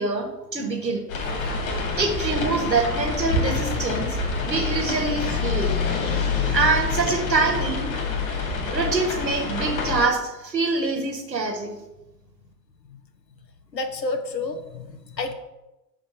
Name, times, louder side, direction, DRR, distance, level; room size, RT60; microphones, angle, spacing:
voice 1, 0.0-1.0 2.0-4.2 4.4-5.8 6.5-7.9 8.7-11.7, right 3 dB, 85° right, 3 dB, 1.4 m, -25 dB
sound 1, 1.1-10.1, left 4 dB, 55° left, 2.2 m, -26 dB
voice 2, 1.2-1.6 12.9-13.0 13.7-15.3, left 3 dB, 80° left, 6 dB, 1.1 m, -31 dB
5.8 x 5.0 x 5.4 m, 0.97 s
figure-of-eight pair, 95°, 49 cm